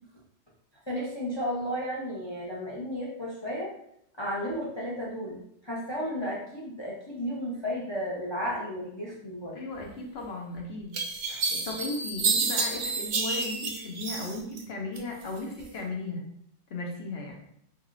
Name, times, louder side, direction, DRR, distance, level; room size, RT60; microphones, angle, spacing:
voice 1, 0.9-3.7 4.2-9.6 11.3-11.4, equal, 30° left, -4 dB, 0.5 m, -33 dB
voice 2, 9.5-11.0 11.5-16.3 16.7-17.4, left 2 dB, 60° left, 0 dB, 0.8 m, -36 dB
sound 1, 10.2-10.3 10.9-14.6 15.0-15.7, right 4 dB, 60° right, 0.7 m, -29 dB
3.7 x 3.2 x 2.4 m, 0.73 s
omnidirectional pair, 1.3 m